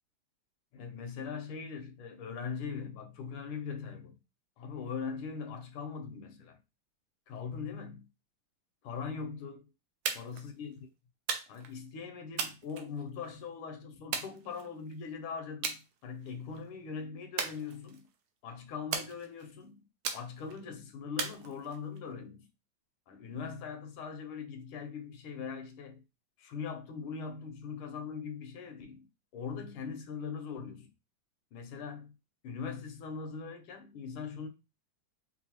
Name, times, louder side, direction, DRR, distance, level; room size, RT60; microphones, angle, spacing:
voice 1, 0.7-4.2 4.6-6.6 7.3-8.1 8.8-9.7 10.1-10.8 11.5-18.1 18.4-19.9 20.1-22.5 23.1-26.0 26.4-29.1 29.3-30.9 31.5-32.1 32.4-34.5, left 6 dB, 85° left, 1.6 m, -41 dB
sound 1, 10.1-10.5 11.3-11.8 12.4-13.3 14.1-14.9 15.6-15.8 16.2-16.6 17.4-18.2 18.9-19.5 20.0-20.6 21.2-22.0, right 7 dB, 80° right, 1.4 m, -37 dB
4.7 x 2.6 x 2.9 m
omnidirectional pair, 2.3 m